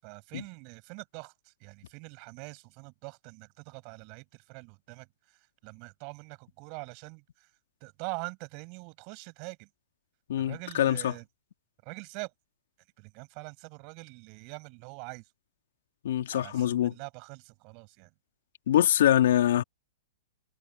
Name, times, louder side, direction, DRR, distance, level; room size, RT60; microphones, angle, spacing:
voice 1, 0.0-7.5 7.8-9.7 10.4-11.2 11.8-12.3 13.0-15.3 16.3-18.1, right 35 dB, 45° right, 6.4 m, -44 dB
voice 2, 10.3-11.1 16.0-16.9 18.7-19.6, left 11 dB, 70° left, 2.5 m, -24 dB
hypercardioid pair, 125°, 0 cm